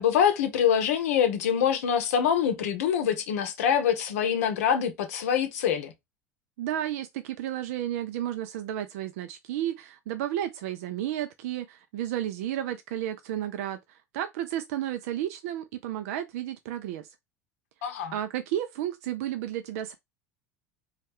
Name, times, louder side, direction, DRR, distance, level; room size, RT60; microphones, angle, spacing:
voice 1, 0.0-5.9 17.8-18.1, left 8 dB, 70° left, 0.7 m, -25 dB
voice 2, 6.6-17.1 18.1-19.9, right 12 dB, 65° right, 0.4 m, -32 dB
3.1 x 2.3 x 3.4 m
hypercardioid pair, 80°, 8 cm